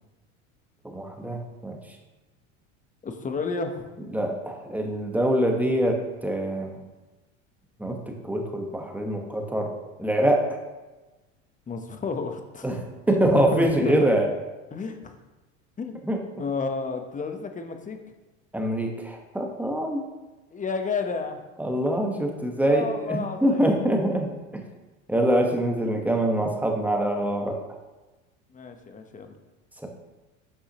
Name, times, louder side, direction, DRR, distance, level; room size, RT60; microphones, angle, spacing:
voice 1, 0.8-1.8 4.1-6.8 7.8-9.7 10.0-10.6 12.6-14.3 16.1-16.2 18.5-20.0 21.6-24.3 24.5-24.6 25.1-27.6 29.8-29.9, right 1 dB, 5° right, 2 dB, 1.1 m, -24 dB
voice 2, 3.0-3.9 11.7-14.1 14.7-15.2 15.8-16.0 16.4-18.0 20.5-21.4 22.6-23.9 28.5-29.4, left 4 dB, 20° left, 6 dB, 0.9 m, -31 dB
8.3 x 5.5 x 2.9 m, 1.1 s
hypercardioid pair, 95°, 40 cm